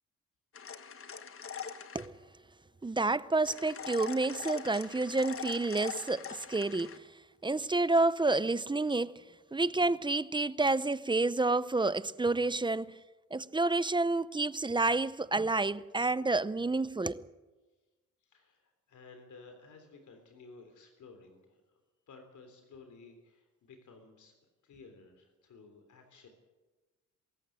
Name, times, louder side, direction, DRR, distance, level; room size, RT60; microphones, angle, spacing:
sound 1, 0.5-2.1 3.5-7.0, left 7 dB, 45° left, 1.3 m, -43 dB
voice 1, 2.8-6.9 7.4-9.2 9.5-12.9 13.3-17.3, right 3 dB, 15° right, 0.6 m, -29 dB
voice 2, 18.2-21.8 22.1-24.3 24.6-26.3, left 4 dB, 80° left, 3.5 m, -55 dB
23.5 x 14.0 x 9.3 m
cardioid pair, 115°, 30 cm